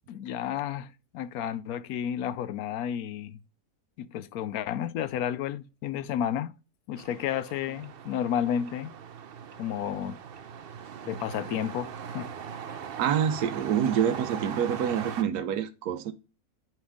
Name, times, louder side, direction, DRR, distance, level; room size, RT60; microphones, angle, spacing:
voice 1, 0.1-3.4 4.0-6.5 6.9-8.9 9.6-10.2 11.1-12.3 12.7-12.8, left 9 dB, 75° left, 1.0 m, -32 dB
sound 1, 7.0-15.2, right 7 dB, 55° right, 0.6 m, -40 dB
voice 2, 13.0-16.1, right 9 dB, 80° right, 1.3 m, -27 dB
10.5 x 4.5 x 3.5 m
omnidirectional pair, 1.6 m